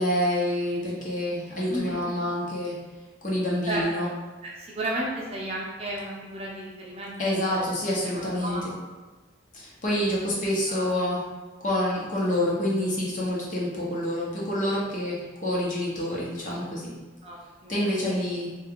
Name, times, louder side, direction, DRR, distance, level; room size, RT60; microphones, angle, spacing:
voice 1, 0.0-2.8 3.2-4.1 7.2-8.7 9.5-11.2 11.6-16.9 17.7-18.5, left 1 dB, 40° left, -5 dB, 0.8 m, -27 dB
voice 2, 1.7-2.0 3.7-4.1 4.4-7.2 7.5-7.6 8.0-8.6 9.9-10.1 10.7-10.9 17.2-18.2, right 1 dB, 30° right, -4 dB, 0.6 m, -34 dB
3.3 x 2.3 x 3.6 m, 1.2 s
head